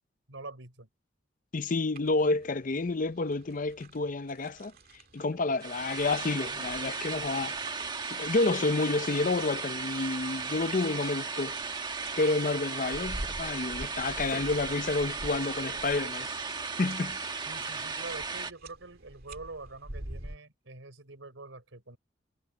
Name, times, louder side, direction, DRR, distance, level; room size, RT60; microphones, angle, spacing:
voice 1, 0.3-0.9 17.5-22.0, right 3 dB, 85° right, 3.9 m, -45 dB
voice 2, 1.5-4.7 5.1-7.5 8.1-11.6 12.2-16.3 16.8-17.2, left 3 dB, 45° left, 0.6 m, -29 dB
sound 1, 1.9-20.4, right 1 dB, 50° right, 2.3 m, -48 dB
sound 2, 5.6-18.5, right 4 dB, 25° right, 1.4 m, -36 dB
head